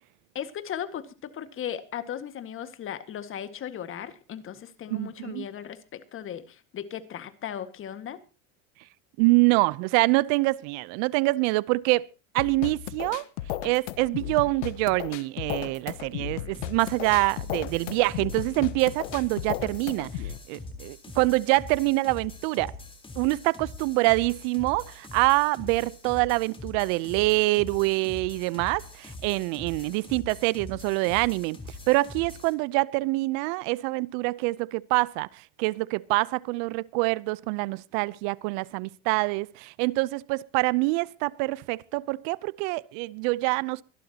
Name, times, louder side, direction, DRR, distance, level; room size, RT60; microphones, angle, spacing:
voice 1, 0.3-8.2, left 9 dB, 35° left, 1.8 m, -37 dB
voice 2, 4.9-5.5 9.2-12.0 12.3-13.2 13.6-20.1 20.5-22.7 23.2-31.6 31.9-43.8, right 23 dB, 65° right, 0.8 m, -25 dB
sound 1, 12.4-20.4, left 13 dB, 90° left, 1.2 m, -35 dB
sound 2, 16.5-32.5, left 2 dB, 15° left, 3.9 m, -43 dB
24.0 x 12.0 x 2.9 m
supercardioid pair, 125°, 36 cm